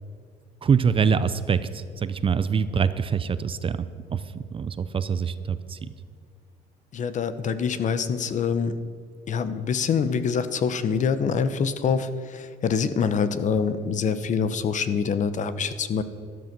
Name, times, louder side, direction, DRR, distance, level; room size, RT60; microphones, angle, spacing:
voice 1, 0.6-5.9, right 6 dB, 30° right, 13 dB, 0.6 m, -25 dB
voice 2, 6.9-8.7 9.3-16.0, left 6 dB, 45° left, 13 dB, 0.9 m, -25 dB
12.5 x 12.5 x 6.0 m, 2.2 s
cardioid pair, 110°, 17 cm